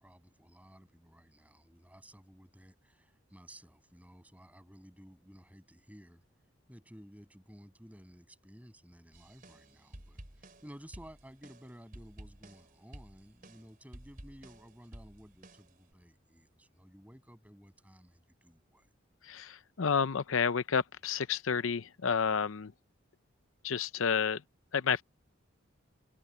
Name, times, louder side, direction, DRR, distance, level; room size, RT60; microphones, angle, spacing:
voice 1, 0.0-6.2 6.7-18.9, equal, 5° right, 7.5 m, -55 dB
sound 1, 9.1-15.9, right 1 dB, 45° right, 3.8 m, -52 dB
voice 2, 19.2-22.7 23.6-24.4 24.7-25.0, left 6 dB, 85° left, 0.7 m, -30 dB
head